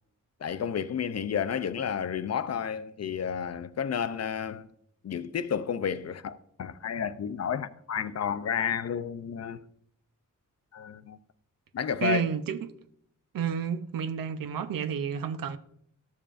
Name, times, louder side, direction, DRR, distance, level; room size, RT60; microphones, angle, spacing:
voice 1, 0.4-4.7 5.0-9.6 10.7-11.2 11.7-12.2, left 7 dB, 50° left, 0.5 m, -31 dB
voice 2, 12.0-12.7 13.3-15.6, right 7 dB, 85° right, 0.7 m, -30 dB
13.0 x 7.0 x 2.5 m
wide cardioid pair, 125°, 33 cm